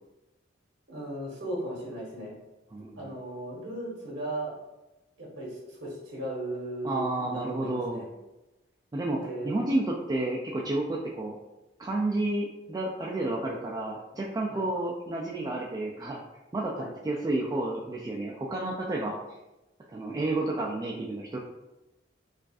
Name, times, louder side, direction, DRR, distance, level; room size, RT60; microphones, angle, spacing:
voice 1, 0.9-2.3 3.0-4.5 5.2-8.1 9.2-9.7 14.5-14.6 16.7-16.9, right 1 dB, 85° right, -3 dB, 1.2 m, -36 dB
voice 2, 2.7-3.1 6.8-8.0 8.9-11.4 11.8-16.2 16.5-16.7 17.0-19.1 19.9-21.4, right 2 dB, 20° right, -3 dB, 0.3 m, -31 dB
4.7 x 2.5 x 2.3 m, 1.0 s
head